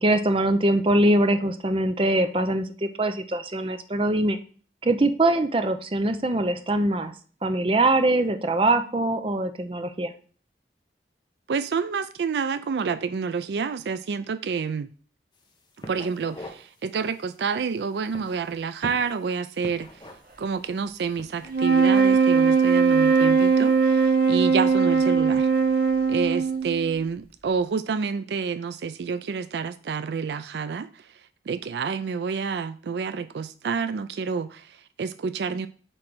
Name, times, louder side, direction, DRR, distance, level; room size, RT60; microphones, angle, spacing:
voice 1, 0.0-4.4 4.8-7.1 7.4-10.1, right 1 dB, 30° right, 0.6 m, -23 dB
voice 2, 11.5-14.9 15.9-19.9 20.4-25.5 26.1-30.9 31.5-35.7, right 5 dB, 70° right, 0.4 m, -28 dB
sound 1, 15.3-15.5 15.8-16.6 17.0-17.2 18.0-19.2 19.6-20.4 21.0-21.5, left 1 dB, 25° left, 1.2 m, -41 dB
sound 2, 21.5-26.9, right 5 dB, 55° right, 1.0 m, -20 dB
8.6 x 3.3 x 6.1 m
head